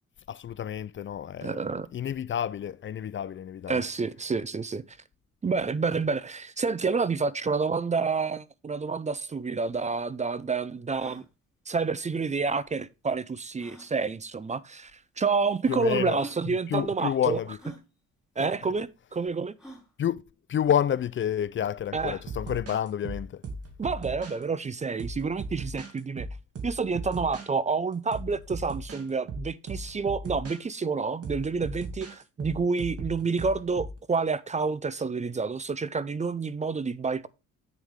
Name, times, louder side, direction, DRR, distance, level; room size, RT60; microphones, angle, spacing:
voice 1, 0.3-3.8 15.7-16.2 16.5-17.6 18.4-18.5 20.0-20.2 20.5-23.4, left 9 dB, 40° left, 0.4 m, -29 dB
voice 2, 1.4-1.9 3.7-4.8 5.4-11.2 11.7-17.4 18.4-19.5 21.9-22.2 23.8-26.3 26.6-37.3, right 4 dB, 25° right, 0.5 m, -29 dB
sound 1, 9.4-9.5 9.7-9.8 10.3-10.4 10.9-11.3 12.6-12.7 13.6-13.9 14.9-15.0 15.7-15.8 16.1-16.4 17.6-17.8 19.6-19.9, equal, ahead, 3.5 m, -46 dB
sound 2, 22.0-24.4 25.0-27.5 27.9-30.6 31.2-34.0, right 2 dB, 50° right, 2.3 m, -38 dB
8.2 x 7.1 x 3.6 m
cardioid pair, 90°, 30 cm